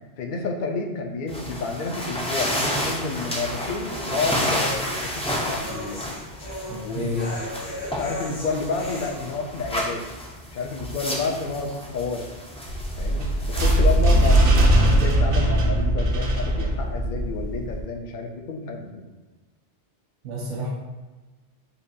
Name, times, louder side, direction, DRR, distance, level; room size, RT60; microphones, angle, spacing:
voice 1, 0.2-6.0 6.8-7.5 7.9-10.0 10.5-12.3 13.0-19.1, left 3 dB, 55° left, 3 dB, 0.6 m, -30 dB
sound 1, 1.3-14.9, equal, 10° left, 0.3 m, -31 dB
sound 2, 2.8-9.3, left 1 dB, 75° left, 1.8 m, -38 dB
voice 2, 6.7-7.4 20.2-20.7, equal, 90° right, -4 dB, 1.0 m, -31 dB
sound 3, 12.7-17.8, right 1 dB, 55° right, 0.8 m, -20 dB
6.7 x 2.3 x 2.6 m, 1.2 s
omnidirectional pair, 1.2 m